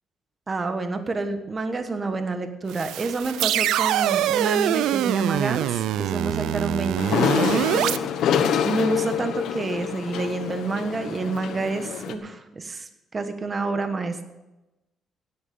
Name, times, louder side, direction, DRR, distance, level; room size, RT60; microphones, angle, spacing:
voice 1, 0.5-8.0 8.6-14.2, right 3 dB, 35° right, 8 dB, 1.3 m, -28 dB
sound 1, 2.7-8.0, right 12 dB, 90° right, 0.5 m, -24 dB
sound 2, 7.0-12.1, left 8 dB, 80° left, 1.3 m, -26 dB
16.5 x 8.6 x 6.9 m, 1.0 s
cardioid pair, 90°, 0 cm